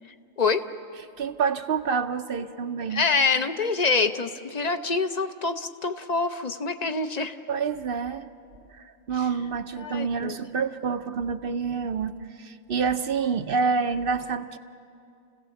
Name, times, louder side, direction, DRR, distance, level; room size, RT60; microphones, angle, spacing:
voice 1, 1.2-3.0 7.5-8.3 8.7-14.6, right 5 dB, 55° right, 10 dB, 0.8 m, -28 dB
voice 2, 2.9-7.4 9.8-10.4, left 4 dB, 40° left, 9 dB, 0.7 m, -26 dB
29.5 x 17.0 x 7.1 m, 2.5 s
omnidirectional pair, 1.3 m